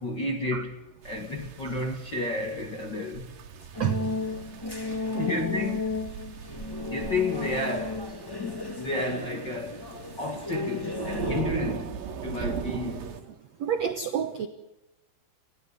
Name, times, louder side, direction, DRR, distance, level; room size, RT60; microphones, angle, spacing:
voice 1, 0.0-3.4 4.7-5.8 6.9-8.1 8.4-9.9 10.2-13.2, left 2 dB, 50° left, 1.3 m, -32 dB
sound 1, 1.0-13.2, right 7 dB, 60° right, 3.4 m, -39 dB
sound 2, 3.7-11.4, left 2 dB, 20° left, 0.5 m, -34 dB
voice 2, 4.8-5.3 12.3-12.5 13.6-14.5, right 8 dB, 85° right, 1.5 m, -30 dB
30.0 x 16.0 x 9.7 m
omnidirectional pair, 5.0 m